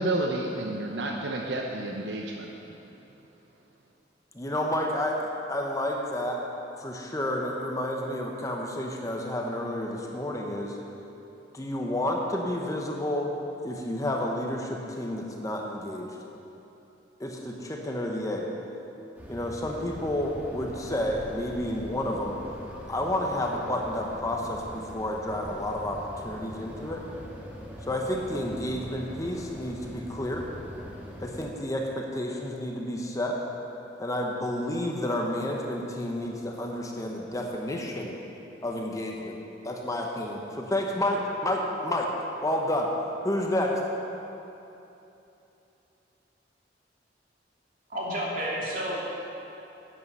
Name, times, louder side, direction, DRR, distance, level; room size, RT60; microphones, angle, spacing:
voice 1, 0.0-2.5, right 2 dB, 70° right, 1 dB, 0.8 m, -30 dB
voice 2, 4.3-5.2 5.5-6.4 6.8-10.8 11.5-13.3 13.6-16.1 17.2-18.5 19.3-22.4 22.9-26.0 26.2-27.0 27.9-30.4 31.2-33.4 34.0-38.2 38.6-39.4 39.6-42.1 42.4-42.9 43.2-43.7, left 1 dB, 20° left, 0 dB, 0.9 m, -30 dB
sound 1, 19.2-31.5, equal, 10° right, 1.6 m, -43 dB
voice 3, 47.9-49.1, equal, 50° right, -5 dB, 2.7 m, -31 dB
11.0 x 8.7 x 5.5 m, 2.9 s
head